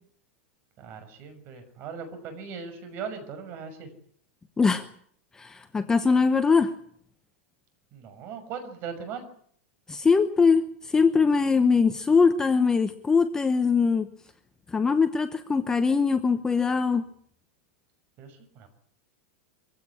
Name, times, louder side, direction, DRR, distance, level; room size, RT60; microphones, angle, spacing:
voice 1, 0.8-3.9 7.9-9.3 18.2-18.7, right 6 dB, 35° right, 9 dB, 6.1 m, -39 dB
voice 2, 4.6-4.9 5.3-6.7 9.9-14.1 14.7-17.0, left 5 dB, 10° left, 8 dB, 1.0 m, -22 dB
24.0 x 16.0 x 9.8 m, 0.62 s
supercardioid pair, 165°, 7 cm